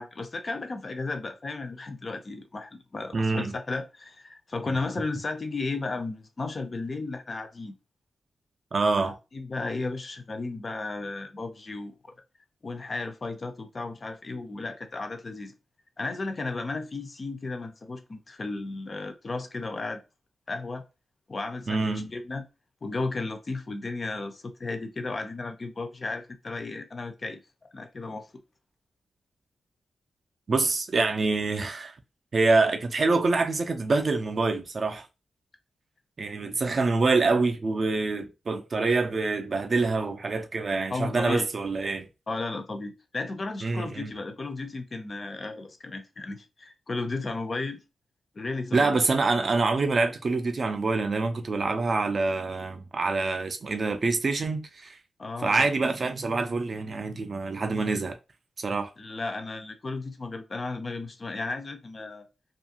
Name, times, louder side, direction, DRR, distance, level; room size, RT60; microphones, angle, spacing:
voice 1, 0.0-7.7 9.0-11.9 12.6-15.5 16.0-20.0 20.5-20.8 21.3-22.4 22.8-27.4 27.7-28.3 40.9-41.5 42.3-47.8 48.4-49.0 55.2-55.7 59.0-62.3, left 3 dB, 30° left, 0.4 m, -34 dB
voice 2, 3.1-3.5 8.7-9.1 21.7-22.1 30.5-32.0 32.3-35.1 36.2-42.1 43.6-44.1 48.7-55.0 55.4-58.2 58.6-58.9, right 3 dB, 40° right, 0.4 m, -26 dB
2.7 x 2.4 x 2.7 m
wide cardioid pair, 170°, 0 cm